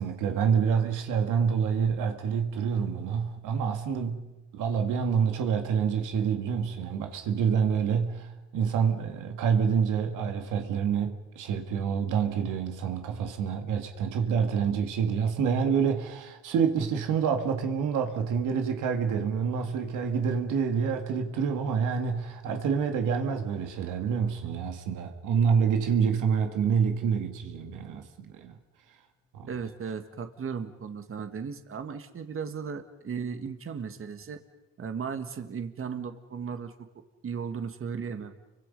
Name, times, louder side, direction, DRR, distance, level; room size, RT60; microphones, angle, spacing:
voice 1, 0.0-4.3 4.5-28.5 29.3-29.5, right 6 dB, 90° right, 2.1 m, -27 dB
voice 2, 29.5-34.4 34.8-36.7 37.2-38.3, right 6 dB, 45° right, 1.9 m, -36 dB
30.0 x 24.0 x 5.4 m
cardioid pair, 90°, 30 cm